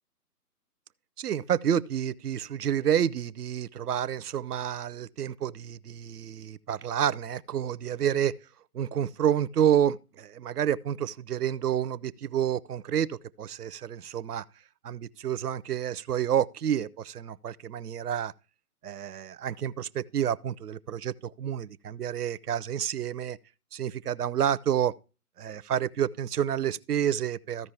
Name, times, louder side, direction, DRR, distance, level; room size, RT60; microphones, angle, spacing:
voice 1, 1.2-8.3 8.7-14.4 14.8-18.3 18.8-23.4 23.7-24.9 25.4-27.7, right 9 dB, 80° right, 0.7 m, -29 dB
14.5 x 5.3 x 3.4 m
hypercardioid pair, 150°, 46 cm